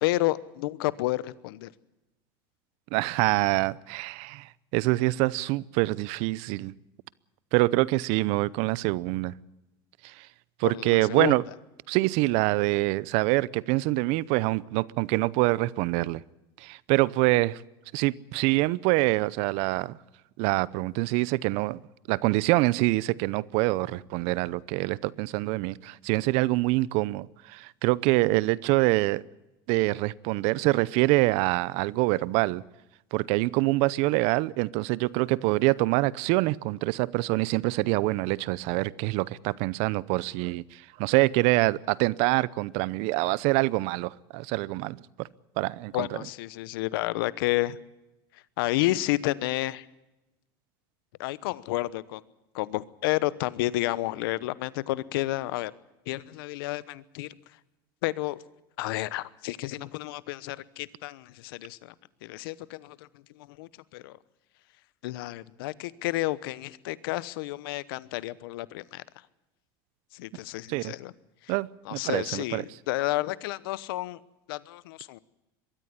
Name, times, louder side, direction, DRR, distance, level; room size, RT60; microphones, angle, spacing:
voice 1, 0.0-1.7 10.6-11.3 45.9-47.8 48.6-49.8 51.2-52.2 52.5-55.7 56.1-57.3 58.0-58.4 58.8-61.9 62.2-63.0 63.6-64.2 65.0-69.0 70.1-71.1 71.9-74.2 74.5-75.2, left 18 dB, 80° left, 1.0 m, -30 dB
voice 2, 2.9-6.7 7.5-9.3 10.0-10.3 10.6-11.4 11.9-16.2 16.6-17.6 17.9-20.0 20.4-21.8 22.1-29.2 29.7-32.6 33.1-45.3 45.6-46.2 70.7-70.9 71.5-72.6, right 21 dB, 65° right, 0.7 m, -25 dB
22.5 x 13.5 x 10.0 m
supercardioid pair, 105°, 12 cm